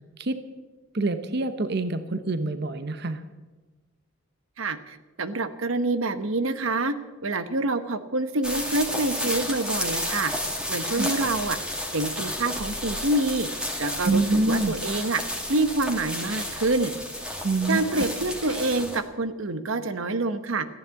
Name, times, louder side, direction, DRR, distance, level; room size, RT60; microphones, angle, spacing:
voice 1, 0.9-3.2 10.9-11.1 14.0-14.8 17.4-18.0, right 2 dB, 55° right, 10 dB, 0.9 m, -26 dB
voice 2, 4.6-6.9 7.2-10.3 10.7-11.6 11.9-13.5 13.8-15.2 15.5-16.9 17.7-20.7, right 2 dB, 85° right, 11 dB, 1.0 m, -26 dB
sound 1, 8.4-19.0, left 1 dB, 5° right, 2.3 m, -31 dB
14.5 x 10.5 x 8.3 m, 1.3 s
head